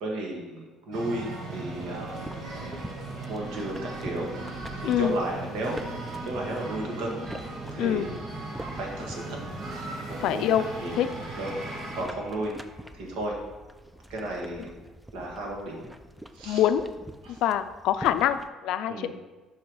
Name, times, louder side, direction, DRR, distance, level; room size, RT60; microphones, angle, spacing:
voice 1, 0.0-2.3 3.3-4.3 4.8-5.8 6.2-7.2 7.7-8.1 8.7-9.4 10.1-10.5 10.8-11.0 11.4-11.5 11.9-12.5 12.9-13.4 14.1-14.7 15.1-15.9 16.3-16.6 17.2-17.4 18.9-19.1, right 1 dB, 80° right, -1 dB, 1.7 m, -33 dB
sound 1, 0.6-3.3 10.8-16.4, right 1 dB, 30° right, 2.2 m, -51 dB
sound 2, 0.9-12.0, right 2 dB, 60° right, 1.7 m, -38 dB
sound 3, 1.7-18.5, right 1 dB, 5° right, 0.4 m, -46 dB
voice 2, 4.8-5.1 7.8-8.1 10.2-10.6 11.0-11.1 16.5-16.9 17.4-19.1, left 11 dB, 75° left, 11 dB, 0.4 m, -25 dB
5.6 x 4.8 x 5.3 m, 1.2 s
cardioid pair, 115°, 0 cm